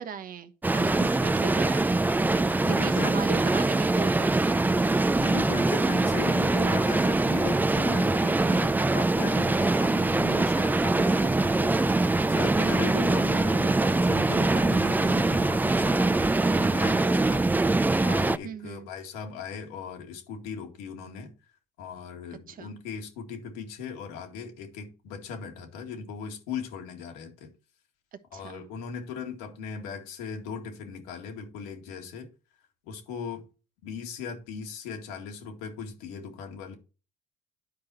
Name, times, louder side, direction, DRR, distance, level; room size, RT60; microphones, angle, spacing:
voice 1, 0.0-2.1 2.7-4.6 18.4-18.9 22.5-22.7 28.3-28.7, right 7 dB, 50° right, 1.1 m, -38 dB
sound 1, 0.6-18.4, right 2 dB, 10° right, 0.5 m, -23 dB
voice 2, 0.8-1.3 2.6-3.2 5.2-17.7 18.0-21.3 21.8-27.5 28.3-32.3 32.8-33.4 33.8-36.8, left 6 dB, 85° left, 2.1 m, -38 dB
10.5 x 4.9 x 4.3 m
supercardioid pair, 75°, 18 cm